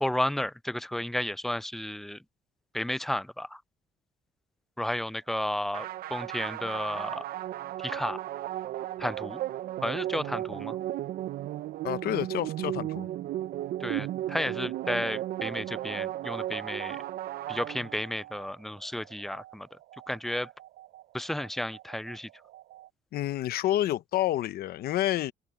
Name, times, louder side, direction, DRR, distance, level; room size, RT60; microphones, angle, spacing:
voice 1, 0.0-2.2 2.7-3.6 4.8-7.2 7.8-8.2 9.0-9.4 9.8-10.8 13.8-17.0 17.5-19.8 20.1-20.5 21.1-22.3, left 1 dB, ahead, 0.3 m, -32 dB
sound 1, 5.2-22.9, right 14 dB, 80° right, 4.7 m, -52 dB
sound 2, 5.7-18.3, right 13 dB, 65° right, 0.6 m, -35 dB
voice 2, 11.8-13.1 23.1-25.3, left 13 dB, 65° left, 0.9 m, -29 dB
cardioid pair, 110°, 17 cm